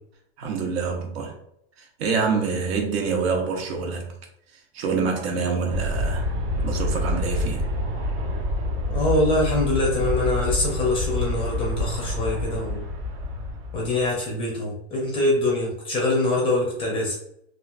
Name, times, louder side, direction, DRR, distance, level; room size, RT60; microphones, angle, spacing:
voice 1, 0.4-1.3 2.0-4.0 4.7-6.3 6.6-7.6, right 5 dB, 75° right, 0.9 m, -26 dB
Aircraft, 5.7-14.1, left 1 dB, 35° right, 0.4 m, -27 dB
voice 2, 8.9-12.8 13.7-17.2, left 2 dB, 15° left, 0.5 m, -24 dB
3.0 x 2.4 x 2.3 m
supercardioid pair, 170°, 31 cm